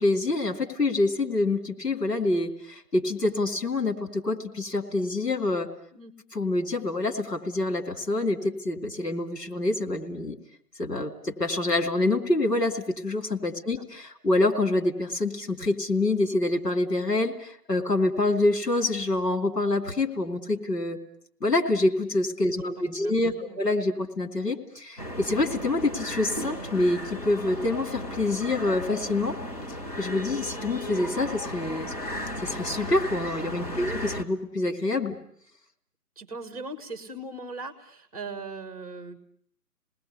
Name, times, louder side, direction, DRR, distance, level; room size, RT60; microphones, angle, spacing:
voice 1, 0.0-5.7 6.3-10.4 10.8-21.0 21.4-29.4 30.0-31.9 32.4-35.2, left 2 dB, 80° left, 3 dB, 3.2 m, -26 dB
voice 2, 22.8-23.6 33.7-33.9 36.2-39.2, right 3 dB, 20° right, 8 dB, 1.4 m, -40 dB
sound 1, 25.0-34.2, equal, 25° left, 1.3 m, -35 dB
28.5 x 19.5 x 8.4 m, 0.64 s
figure-of-eight pair, 150°, 48 cm